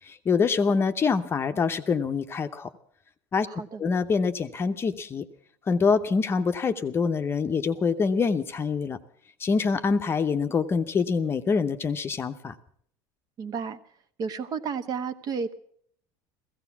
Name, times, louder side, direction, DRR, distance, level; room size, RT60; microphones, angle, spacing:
voice 1, 0.1-2.7 3.3-3.5 3.8-5.3 5.7-9.0 9.4-12.5, left 5 dB, 25° left, 7 dB, 0.8 m, -25 dB
voice 2, 3.5-3.8 13.4-13.8 14.2-15.5, right 6 dB, 40° right, 10 dB, 1.1 m, -32 dB
16.0 x 15.0 x 5.9 m, 0.63 s
cardioid pair, 140°, 10 cm